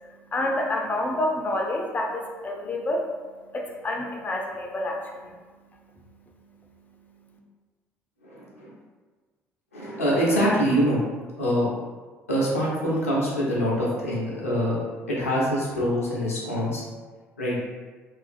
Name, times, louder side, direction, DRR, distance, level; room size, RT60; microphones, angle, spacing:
voice 1, 0.0-3.1 3.5-5.3, left 1 dB, 20° left, 0 dB, 0.4 m, -28 dB
voice 2, 8.2-8.7 9.7-11.0 11.4-11.7 12.3-14.8 15.1-16.8 17.4-17.6, equal, 85° left, -6 dB, 0.5 m, -24 dB
2.4 x 2.3 x 2.5 m, 1.4 s
figure-of-eight pair, 50°, 7 cm